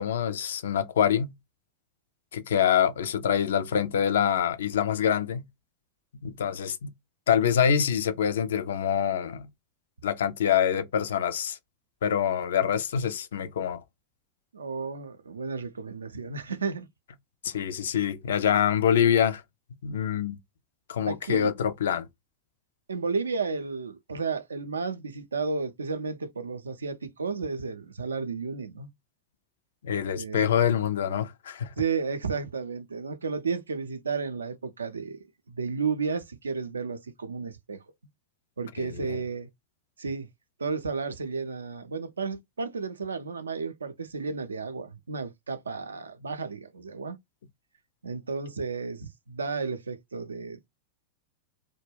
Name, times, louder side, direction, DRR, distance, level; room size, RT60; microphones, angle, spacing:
voice 1, 0.0-1.4 2.3-5.5 6.2-6.9 7.3-9.5 10.0-11.6 12.0-13.8 17.4-19.4 19.8-20.4 20.9-22.1 29.8-31.7 38.8-39.2, left 8 dB, 60° left, 0.3 m, -25 dB
voice 2, 14.5-16.9 21.1-21.5 22.9-28.9 30.2-30.6 31.8-37.8 38.6-39.5 40.0-40.3 40.6-47.2 48.0-50.7, right 5 dB, 75° right, 0.4 m, -33 dB
2.2 x 2.1 x 3.2 m
figure-of-eight pair, 90°, 0 cm